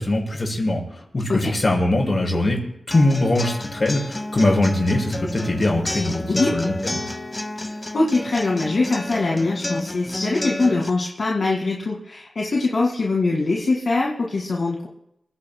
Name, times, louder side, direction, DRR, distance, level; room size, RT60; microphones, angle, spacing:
voice 1, 0.0-2.6 2.9-6.2 6.5-7.0, left 1 dB, 40° left, 0 dB, 6.2 m, -21 dB
sound 1, 2.9-10.9, left 2 dB, 25° left, 1.1 m, -30 dB
voice 2, 7.6-14.9, left 3 dB, 60° left, -2 dB, 2.1 m, -23 dB
28.5 x 16.5 x 2.3 m, 0.80 s
cardioid pair, 60°, 0 cm